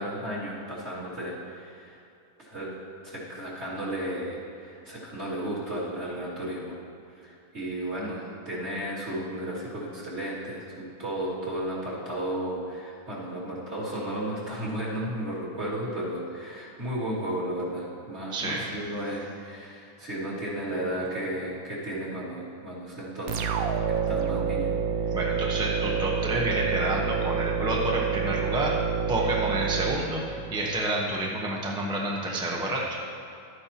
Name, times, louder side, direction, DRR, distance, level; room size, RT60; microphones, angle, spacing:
voice 1, 0.0-2.0 2.4-2.7 3.0-6.7 7.1-23.5 23.9-24.7, right 1 dB, 40° right, -9 dB, 2.7 m, -34 dB
voice 2, 18.3-18.7 25.1-28.8 29.1-32.8, right 1 dB, 5° right, -2 dB, 0.6 m, -29 dB
sound 1, 23.3-30.8, right 6 dB, 65° right, 1.0 m, -28 dB
12.0 x 9.6 x 2.9 m, 2.6 s
omnidirectional pair, 1.8 m